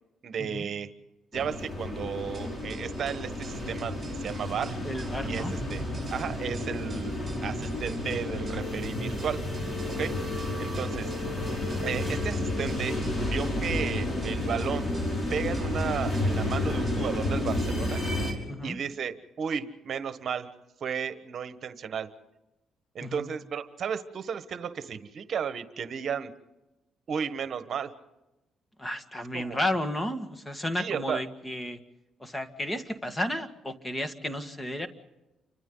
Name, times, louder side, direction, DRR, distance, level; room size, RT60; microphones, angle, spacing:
voice 1, 0.2-0.9 1.3-4.8 5.2-5.8 6.1-9.4 10.0-10.2 10.6-11.1 11.8-13.0 13.3-14.9 15.3-18.0 18.6-20.5 20.8-22.1 22.9-26.3 27.1-27.9 29.3-29.6 30.8-31.2, right 7 dB, 55° right, 11 dB, 1.3 m, -34 dB
sound 1, 1.3-18.3, left 1 dB, 35° left, 5.6 m, -31 dB
sound 2, 2.3-17.7, right 4 dB, 20° right, 7.1 m, -51 dB
voice 2, 4.8-6.0 10.0-10.2 18.5-18.8 23.0-23.3 28.8-31.8 32.2-34.9, left 1 dB, 15° left, 8 dB, 1.9 m, -33 dB
29.5 x 25.5 x 4.0 m, 1.0 s
cardioid pair, 90°, 0 cm